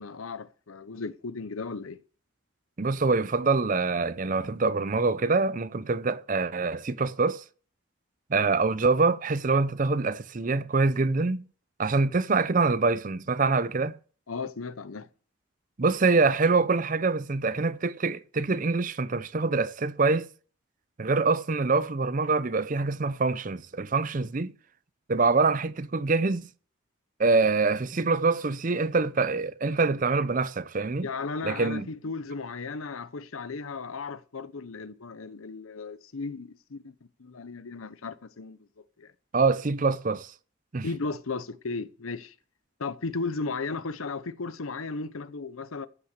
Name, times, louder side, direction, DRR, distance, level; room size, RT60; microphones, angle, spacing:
voice 1, 0.0-2.0 14.3-15.1 31.0-36.9 37.2-38.6 39.0-39.1 40.8-42.3 42.8-45.9, left 4 dB, 90° left, 0.8 m, -35 dB
voice 2, 2.8-7.4 8.3-11.4 11.8-13.9 15.8-20.3 21.0-24.5 25.1-26.5 27.2-31.1 31.4-31.9 39.3-40.3 40.7-40.9, right 3 dB, 40° right, 0.5 m, -25 dB
14.5 x 5.8 x 6.7 m
head